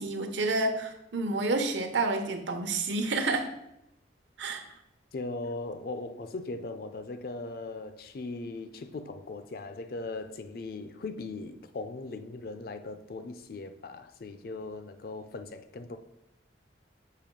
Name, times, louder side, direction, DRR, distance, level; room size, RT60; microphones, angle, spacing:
voice 1, 0.0-3.5 4.4-4.6, right 3 dB, 85° right, 0.9 m, -29 dB
voice 2, 5.1-16.0, left 3 dB, 55° left, 0.4 m, -39 dB
6.7 x 3.0 x 5.2 m
head